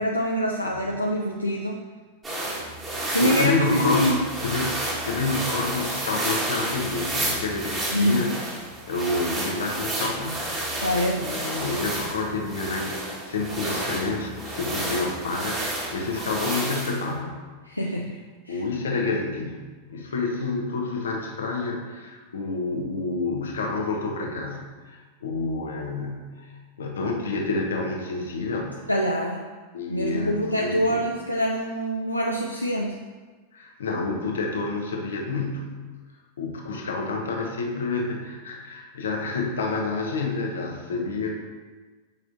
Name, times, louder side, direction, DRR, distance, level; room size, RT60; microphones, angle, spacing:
voice 1, 0.0-1.8 3.1-4.3 7.9-8.3 10.8-11.3 17.6-18.2 18.4-18.6 28.9-29.4 29.9-33.0, equal, 85° left, 0 dB, 0.4 m, -25 dB
sound 1, 2.2-17.0, right 1 dB, 20° right, 1.7 m, -31 dB
voice 2, 3.0-4.8 5.0-8.3 8.9-10.5 11.2-17.3 18.5-19.6 19.9-28.9 29.7-31.0 33.5-35.7 36.4-41.4, left 3 dB, 65° left, 1 dB, 1.1 m, -29 dB
7.6 x 5.9 x 2.7 m, 1.4 s
figure-of-eight pair, 90°, 0 cm